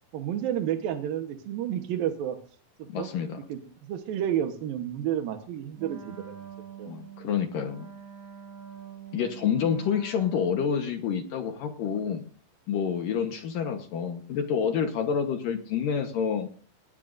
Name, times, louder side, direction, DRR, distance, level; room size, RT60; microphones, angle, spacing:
voice 1, 0.1-2.4 2.8-3.1 3.5-6.9, right 10 dB, 70° right, 5 dB, 2.2 m, -31 dB
voice 2, 2.9-3.4 6.9-7.9 9.1-12.3 12.7-16.5, left 7 dB, 70° left, 6 dB, 2.1 m, -28 dB
Wind instrument woodwind instrument, 5.7-10.9, right 8 dB, 85° right, 5.1 m, -45 dB
20.0 x 17.0 x 2.6 m, 0.41 s
omnidirectional pair, 5.5 m